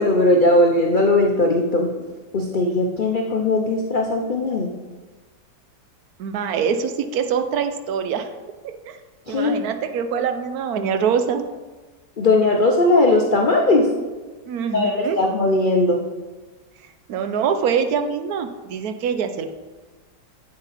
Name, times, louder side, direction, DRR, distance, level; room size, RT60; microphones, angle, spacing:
voice 1, 0.0-1.9 2.3-4.7 9.3-9.6 12.2-13.9 14.7-16.0, left 2 dB, 70° left, 1 dB, 0.4 m, -18 dB
voice 2, 6.2-8.3 8.6-9.0 9.3-11.4 14.5-15.2 17.1-19.5, right 7 dB, 65° right, 9 dB, 1.1 m, -24 dB
8.0 x 7.9 x 4.1 m, 1.3 s
omnidirectional pair, 1.9 m